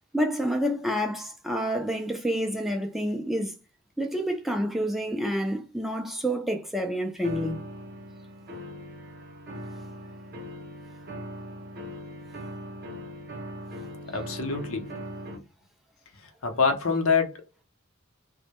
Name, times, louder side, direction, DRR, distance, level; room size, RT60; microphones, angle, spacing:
voice 1, 0.1-3.6 4.0-7.6, equal, ahead, 0.3 m, -28 dB
sound 1, 7.2-15.4, equal, 45° right, 0.6 m, -40 dB
voice 2, 14.1-14.9 16.4-17.4, left 5 dB, 80° left, 0.6 m, -25 dB
2.1 x 2.1 x 2.8 m
head